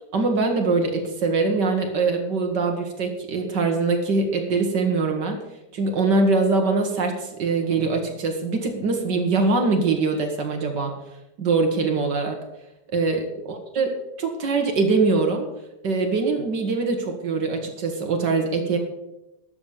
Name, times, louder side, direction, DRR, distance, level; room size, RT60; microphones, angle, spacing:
voice 1, 0.1-5.4 5.7-11.0 11.4-12.4 12.9-13.3 13.8-13.9 14.2-15.5 15.8-18.8, right 3 dB, 80° right, 3 dB, 2.1 m, -23 dB
12.5 x 7.0 x 6.9 m, 0.91 s
omnidirectional pair, 1.9 m